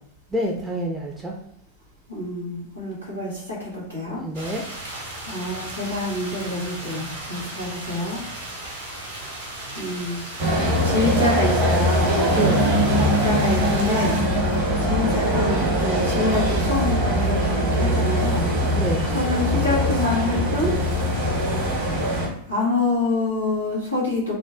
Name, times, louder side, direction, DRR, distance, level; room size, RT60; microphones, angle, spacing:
voice 1, 0.3-1.3 4.1-4.6 12.3-12.7 18.7-19.1, right 1 dB, 10° right, -1 dB, 0.4 m, -27 dB
voice 2, 2.1-4.2 5.2-8.2 9.7-10.2 10.8-12.2 13.2-14.2 14.8-18.5 19.1-20.8 22.5-24.3, left 2 dB, 90° right, -7 dB, 1.1 m, -26 dB
sound 1, 4.3-14.2, right 1 dB, 70° right, 0.8 m, -36 dB
Medellin Metro Outside Walla Quad, 10.4-22.3, equal, 50° right, 0.9 m, -22 dB
sound 2, 12.3-16.7, equal, 85° left, 0.4 m, -26 dB
2.5 x 2.1 x 3.4 m, 0.72 s
figure-of-eight pair, 90°, 0 cm